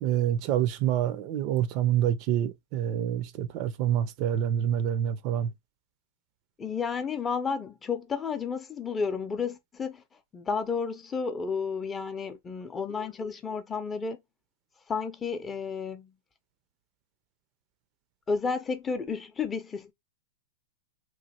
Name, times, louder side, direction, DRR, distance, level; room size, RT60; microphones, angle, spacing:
voice 1, 0.0-5.5, right 10 dB, 45° right, 0.4 m, -27 dB
voice 2, 6.6-10.0 10.3-14.2 14.9-16.1 18.3-19.9, left 5 dB, 20° left, 0.5 m, -32 dB
3.0 x 2.4 x 2.8 m
hypercardioid pair, 120°, 0 cm